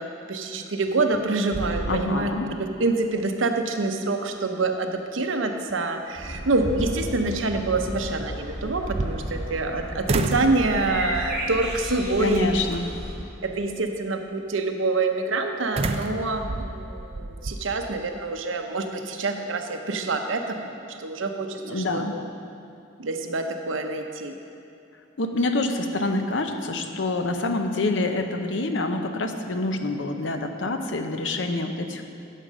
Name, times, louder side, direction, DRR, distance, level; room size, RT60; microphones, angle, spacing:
voice 1, 0.0-2.3 2.6-12.6 13.4-22.0 23.0-24.3, right 3 dB, 85° right, 5 dB, 0.8 m, -26 dB
sound 1, 0.9-1.2 1.5-2.5 2.9-3.0 5.7-5.8 6.3-7.3 8.6-9.7 10.1-10.6 11.1-11.5 12.3-12.8 15.8-17.6, right 2 dB, 30° right, 0.4 m, -30 dB
voice 2, 1.9-2.5 12.2-12.9 21.6-22.2 25.2-32.0, left 2 dB, 70° left, 6 dB, 0.8 m, -26 dB
sound 2, 6.1-13.1, equal, 5° right, 2.4 m, -34 dB
11.0 x 6.4 x 5.2 m, 2.7 s
head